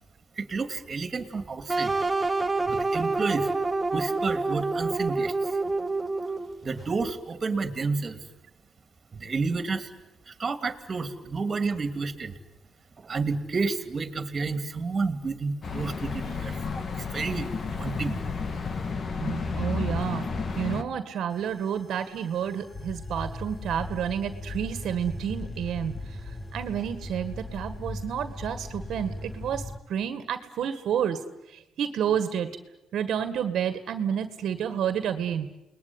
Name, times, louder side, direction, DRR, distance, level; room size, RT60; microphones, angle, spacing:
voice 1, 0.3-2.0 2.7-3.5 3.9-5.6 6.6-8.2 9.1-9.9 10.3-12.4 13.0-16.6 16.9-17.5 17.8-18.2, right 4 dB, 35° right, 9 dB, 2.8 m, -30 dB
sound 1, 1.7-6.6, right 3 dB, 15° right, 1.3 m, -27 dB
sound 2, 15.6-20.8, left 4 dB, 40° left, 2.0 m, -31 dB
voice 2, 19.2-20.3 20.6-31.2 31.5-32.5 32.9-35.5, right 8 dB, 70° right, 10 dB, 1.8 m, -30 dB
sound 3, 21.3-29.8, left 2 dB, 15° left, 1.8 m, -38 dB
29.5 x 20.5 x 9.7 m, 0.93 s
cardioid pair, 105°, 0 cm